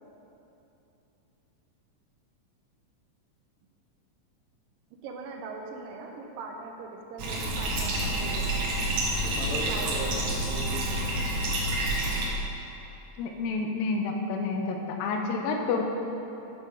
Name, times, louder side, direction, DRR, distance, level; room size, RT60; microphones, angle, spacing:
voice 1, 5.0-8.7 9.4-10.1, right 4 dB, 80° right, 2 dB, 2.2 m, -41 dB
Bathtub (filling or washing), 7.2-12.3, right 1 dB, 60° right, 1.9 m, -28 dB
voice 2, 9.2-11.4, left 1 dB, 60° left, -3 dB, 2.2 m, -38 dB
voice 3, 13.2-14.8 15.0-15.8, left 4 dB, 85° left, 2 dB, 2.4 m, -29 dB
8.1 x 8.0 x 5.1 m, 2.9 s
omnidirectional pair, 4.1 m